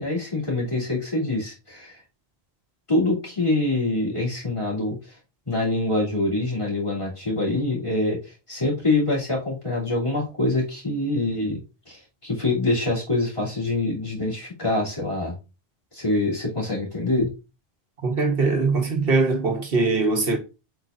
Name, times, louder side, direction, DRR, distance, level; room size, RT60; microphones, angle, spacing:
voice 1, 0.0-2.0 2.9-5.1 5.5-11.6 11.9-15.4 15.9-17.3, left 2 dB, 30° left, 3.0 m, -25 dB
voice 2, 18.0-20.4, right 3 dB, 65° right, 1.2 m, -21 dB
7.9 x 4.8 x 2.6 m
omnidirectional pair, 1.1 m